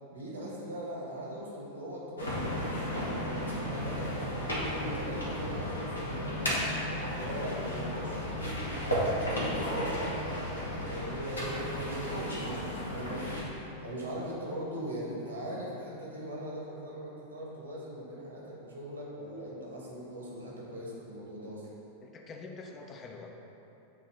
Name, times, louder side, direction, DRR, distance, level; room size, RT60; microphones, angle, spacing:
voice 1, 0.1-21.7, equal, 75° right, -4 dB, 1.5 m, -41 dB
sound 1, 2.2-13.4, equal, 80° left, 1.2 m, -34 dB
voice 2, 22.0-23.3, left 3 dB, 25° left, 2 dB, 0.6 m, -45 dB
7.6 x 3.0 x 4.8 m, 2.9 s
figure-of-eight pair, 90°, 0 cm